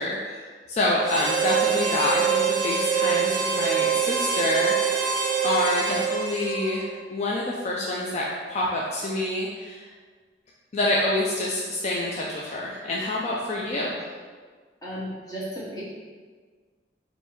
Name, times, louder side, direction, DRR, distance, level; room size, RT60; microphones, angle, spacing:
voice 1, 0.0-4.7 5.4-9.9 10.7-14.0, left 1 dB, 35° left, -3 dB, 0.4 m, -27 dB
Harmonica, 1.0-7.0, right 6 dB, 20° right, 0.8 m, -25 dB
voice 2, 14.8-15.8, equal, 20° left, -8 dB, 1.0 m, -34 dB
3.4 x 2.7 x 4.3 m, 1.5 s
head